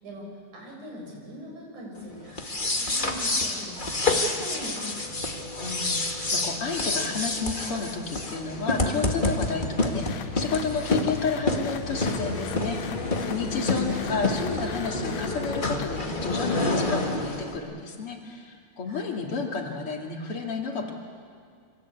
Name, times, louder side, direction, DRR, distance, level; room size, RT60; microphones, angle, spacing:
voice 1, 0.0-5.3 13.5-13.8 18.9-19.1, equal, 80° right, -1 dB, 7.6 m, -42 dB
sound 1, 2.3-17.6, left 2 dB, 20° left, 1.6 m, -28 dB
voice 2, 5.6-6.0 6.3-20.9, left 4 dB, 50° left, 1 dB, 3.3 m, -31 dB
sound 2, 9.8-16.0, left 7 dB, 75° left, 2.1 m, -38 dB
27.0 x 24.5 x 8.4 m, 2.1 s
omnidirectional pair, 3.4 m